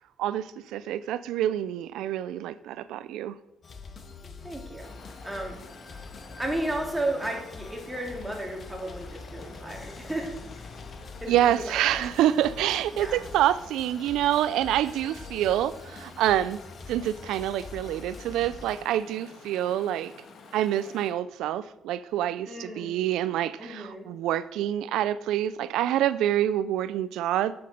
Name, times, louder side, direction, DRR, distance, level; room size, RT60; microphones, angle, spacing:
voice 1, 0.2-3.4 11.3-16.6 16.9-20.1 20.5-27.5, right 12 dB, 90° right, 0.4 m, -27 dB
sound 1, 3.6-18.8, left 4 dB, 45° left, 1.6 m, -45 dB
voice 2, 4.2-5.0 5.2-5.6 6.4-10.7 11.2-12.0 12.9-13.2 22.5-22.9 23.6-24.1, right 1 dB, 10° right, 2.9 m, -34 dB
Chatter / Stream, 4.8-21.1, left 3 dB, 65° left, 1.9 m, -49 dB
8.5 x 7.8 x 6.5 m
cardioid pair, 90°, 0 cm